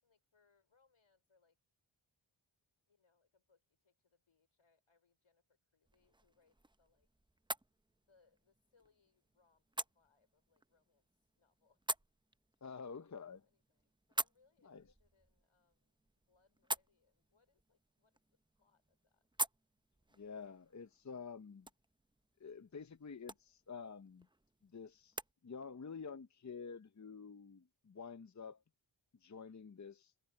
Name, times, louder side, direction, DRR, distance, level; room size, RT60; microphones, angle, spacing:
voice 1, 0.0-1.6 2.9-7.1 8.1-11.1 11.4-11.8 12.7-16.0 16.3-19.3, left 4 dB, 80° left, 5.4 m, -77 dB
sound 1, 5.8-25.3, right 2 dB, 10° right, 0.6 m, -48 dB
voice 2, 12.6-13.4 14.6-14.8 20.1-21.7 22.4-24.3 24.6-25.2 25.4-28.6 29.2-30.1, left 5 dB, 35° left, 0.7 m, -49 dB
wide cardioid pair, 60°, 48 cm